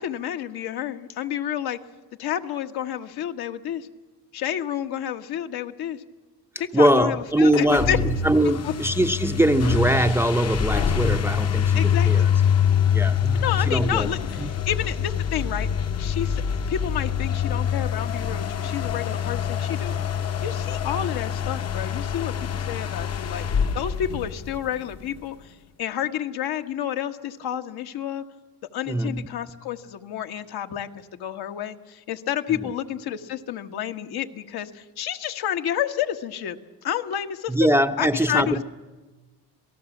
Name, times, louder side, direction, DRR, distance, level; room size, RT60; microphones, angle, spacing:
voice 1, 0.0-1.8 2.2-3.9 4.3-6.0 6.6-8.0 8.6-8.7 11.7-12.3 13.3-15.7 16.0-20.0 20.4-23.4 23.7-28.2 28.7-37.5 38.0-38.6, left 10 dB, 70° left, 6 dB, 1.6 m, -30 dB
voice 2, 6.7-12.3 12.9-14.1 14.4-14.5 28.9-29.3 32.5-32.7 37.5-38.6, right 1 dB, 5° right, 8 dB, 0.7 m, -22 dB
sound 1, 7.4-24.9, left 7 dB, 40° left, 1.0 m, -25 dB
27.5 x 18.0 x 7.4 m, 1.3 s
cardioid pair, 130°, 40 cm